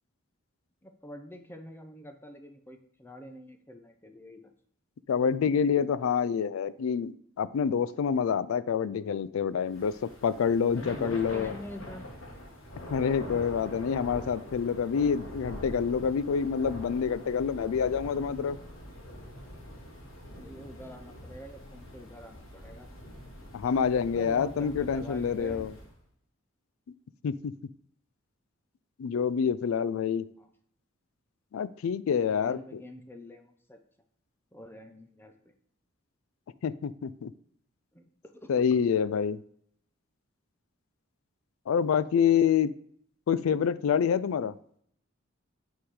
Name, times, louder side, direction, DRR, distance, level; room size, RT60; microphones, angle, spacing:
voice 1, 0.8-4.5 10.6-12.0 20.3-22.9 24.1-25.7 30.4-30.5 32.3-33.8 34.5-35.5 37.9-38.6, equal, 10° left, 6 dB, 0.6 m, -45 dB
voice 2, 5.1-7.1 7.4-11.5 12.9-18.6 23.5-25.7 27.2-27.5 29.0-30.2 31.5-32.6 36.6-37.3 38.5-39.4 41.7-42.7 43.3-44.5, left 7 dB, 85° left, 17 dB, 0.4 m, -27 dB
Thunder / Rain, 9.7-26.0, equal, 70° left, 1.5 m, -44 dB
8.6 x 3.8 x 4.8 m, 0.64 s
head